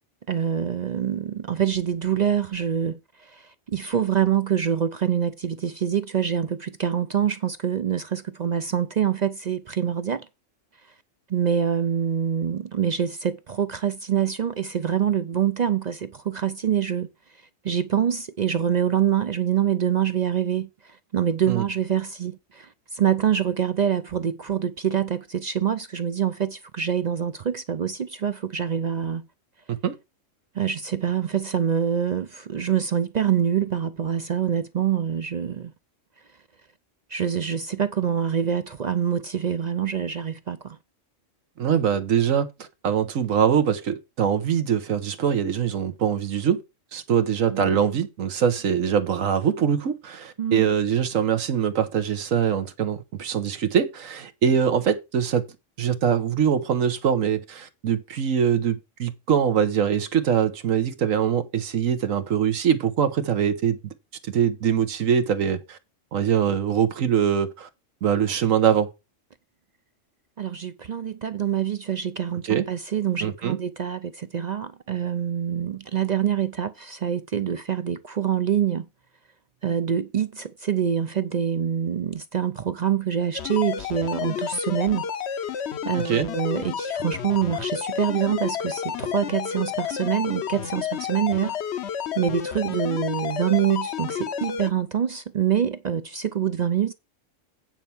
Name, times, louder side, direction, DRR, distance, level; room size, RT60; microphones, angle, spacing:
voice 1, 0.3-10.3 11.3-29.3 30.5-35.7 37.1-40.8 47.5-48.0 50.4-50.7 70.4-78.9 79.6-85.1 85.8-96.9, right 9 dB, 55° right, 0.5 m, -25 dB
voice 2, 41.6-46.6 46.9-55.4 55.8-63.8 64.2-65.8 66.1-67.7 68.0-68.9 72.5-72.6 73.2-73.6 86.1-86.3, right 8 dB, 90° right, 1.5 m, -23 dB
sound 1, 83.3-94.7, left 8 dB, 65° left, 1.0 m, -30 dB
9.1 x 4.5 x 7.0 m
omnidirectional pair, 1.3 m